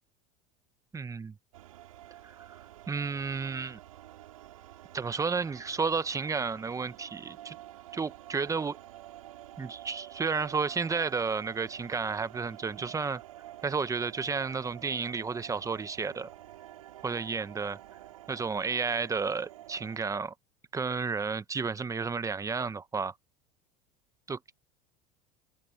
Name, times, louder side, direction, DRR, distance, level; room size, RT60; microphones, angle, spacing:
voice 1, 0.9-1.3 2.2-2.6 2.9-3.8 4.9-7.5 7.9-8.8 9.6-13.2 13.6-16.3 17.0-17.8 18.3-20.3 20.7-23.1 24.3-24.4, right 5 dB, 20° right, 1.1 m, -32 dB
sound 1, 1.5-20.0, right 14 dB, 85° right, 5.8 m, -49 dB
open air
hypercardioid pair, 95°, 18 cm